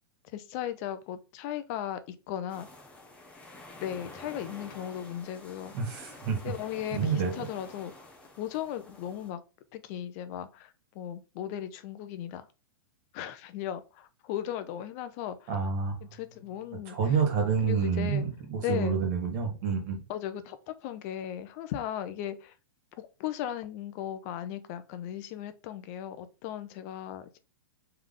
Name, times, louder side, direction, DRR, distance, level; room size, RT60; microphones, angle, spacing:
voice 1, 0.3-2.7 3.8-5.7 6.4-7.9 8.4-9.4 9.7-12.5 13.1-15.5 16.0-17.0 17.6-18.2 18.6-18.9 20.1-22.5 23.0-27.4, left 11 dB, 40° left, 0.6 m, -37 dB
sound 1, 2.5-9.3, left 2 dB, 10° left, 0.9 m, -49 dB
voice 2, 5.7-6.5 6.9-7.5 15.5-16.0 16.9-20.0, right 5 dB, 45° right, 1.8 m, -28 dB
3.4 x 3.4 x 3.8 m
hypercardioid pair, 145°, 12 cm